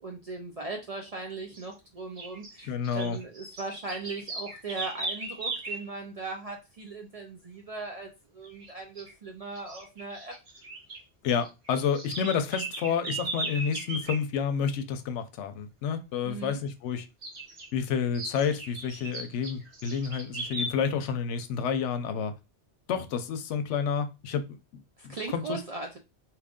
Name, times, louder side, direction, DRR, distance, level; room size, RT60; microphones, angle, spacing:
voice 1, 0.0-10.3 16.2-16.6 25.0-26.0, right 3 dB, 55° right, 0.4 m, -39 dB
sound 1, 1.5-1.7 2.2-5.9 8.4-8.7 9.0-9.1 9.5-11.0 11.3-14.2 17.2-17.7 18.1-20.7, right 2 dB, 70° right, 1.3 m, -37 dB
voice 2, 2.6-3.2 11.2-17.1 17.7-22.4 22.9-25.6, left 7 dB, 85° left, 0.9 m, -30 dB
2.9 x 2.5 x 3.5 m
omnidirectional pair, 1.2 m